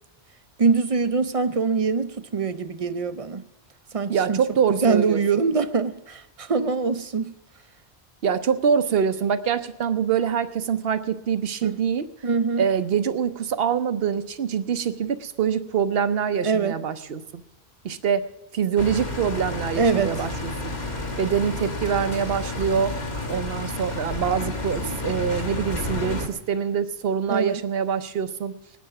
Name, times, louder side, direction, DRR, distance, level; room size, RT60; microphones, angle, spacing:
voice 1, 0.6-3.4 3.9-4.4 4.7-7.3 11.6-11.8 12.2-12.7 16.4-16.8 19.8-20.2 27.3-27.6, right 5 dB, 40° right, 12 dB, 0.7 m, -23 dB
voice 2, 4.1-5.2 8.2-12.1 12.6-17.2 17.8-18.3 18.5-20.8 21.2-23.0 23.3-28.6, right 7 dB, 65° right, 12 dB, 1.0 m, -25 dB
sound 1, 18.8-26.3, left 2 dB, 45° left, 1.5 m, -30 dB
20.0 x 9.4 x 6.0 m, 0.97 s
omnidirectional pair, 1.1 m